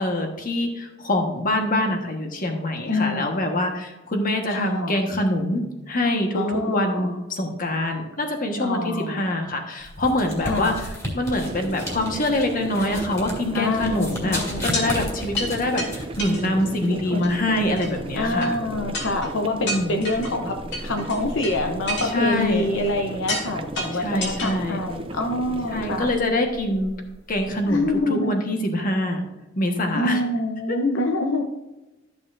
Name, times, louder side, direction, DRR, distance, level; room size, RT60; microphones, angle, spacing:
voice 1, 0.0-18.6 19.6-20.0 22.0-22.6 23.9-24.8 25.7-26.9 27.3-29.3 29.6-30.2 30.7-30.8, left 1 dB, 45° left, 3 dB, 1.4 m, -25 dB
voice 2, 2.8-3.2 4.5-5.0 6.3-7.2 8.6-9.3 10.4-10.8 13.5-14.7 16.9-17.3 18.1-26.1 27.7-28.3 29.9-31.4, left 2 dB, 80° left, 4 dB, 0.8 m, -26 dB
sound 1, 9.8-28.0, equal, 20° left, 2.6 m, -37 dB
sound 2, 11.4-26.1, right 2 dB, 30° right, 0.5 m, -36 dB
sound 3, 14.6-14.9 15.4-15.5 15.8-15.9 16.2-16.9 17.2-17.3 17.8-17.9 18.4-18.5 18.9-19.3 19.7-20.3 20.7-21.5 21.9-22.9 23.3-23.5 23.8-24.5 24.9-25.0, left 1 dB, 65° left, 2.5 m, -30 dB
13.0 x 6.8 x 2.6 m, 1.0 s
head